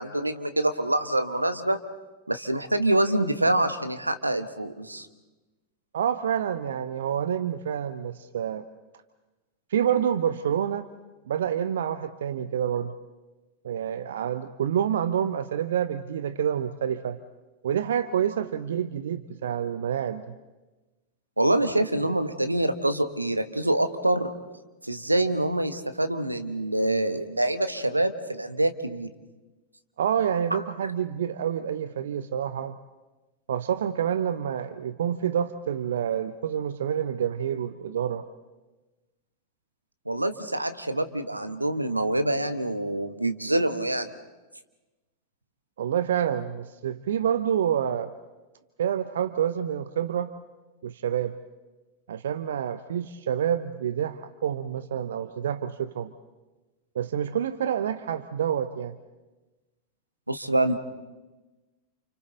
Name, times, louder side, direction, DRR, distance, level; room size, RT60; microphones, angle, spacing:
voice 1, 0.0-1.8 2.3-5.1 21.4-24.3 24.8-29.1 30.5-30.6 40.1-44.1 60.3-60.7, right 1 dB, 85° right, 10 dB, 1.2 m, -25 dB
voice 2, 5.9-8.6 9.7-10.9 11.3-12.9 13.6-17.2 17.6-20.3 30.0-32.8 33.5-38.2 45.8-48.1 48.8-50.3 50.8-51.3 52.1-56.1 56.9-58.9, right 9 dB, 60° right, 13 dB, 0.7 m, -28 dB
29.5 x 29.0 x 4.0 m, 1.1 s
figure-of-eight pair, 90°, 0 cm